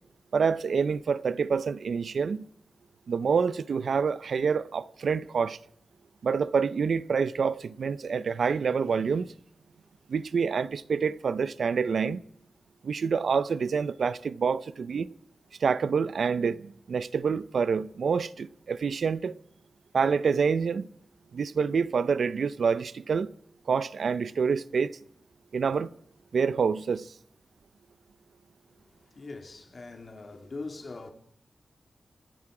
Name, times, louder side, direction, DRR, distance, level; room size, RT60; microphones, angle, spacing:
voice 1, 0.3-2.4 3.1-5.6 6.2-9.3 10.1-12.2 12.8-15.1 15.6-19.3 19.9-20.9 21.3-23.3 23.7-25.0 25.5-25.9 26.3-27.1, right 5 dB, 75° right, 0.6 m, -27 dB
voice 2, 28.8-31.1, left 3 dB, 45° left, 2.2 m, -42 dB
26.5 x 9.7 x 4.9 m
wide cardioid pair, 110°, 0 cm